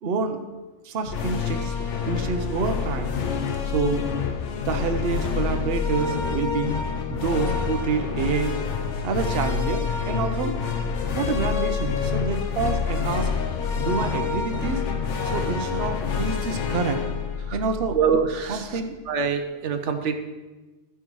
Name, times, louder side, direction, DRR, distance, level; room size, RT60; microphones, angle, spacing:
voice 1, 0.0-0.4 0.8-1.7 2.0-3.1 3.7-4.0 4.6-6.8 7.1-8.6 9.0-10.5 11.1-13.3 13.8-14.8 15.2-17.0 17.5-18.0 18.5-19.0, right 5 dB, 60° right, 6 dB, 0.9 m, -27 dB
sound 1, 1.0-18.5, left 6 dB, 85° left, 1.1 m, -27 dB
voice 2, 17.9-18.8 19.1-20.2, right 6 dB, 85° right, 6 dB, 1.1 m, -24 dB
12.5 x 9.3 x 3.1 m, 1.2 s
omnidirectional pair, 1.2 m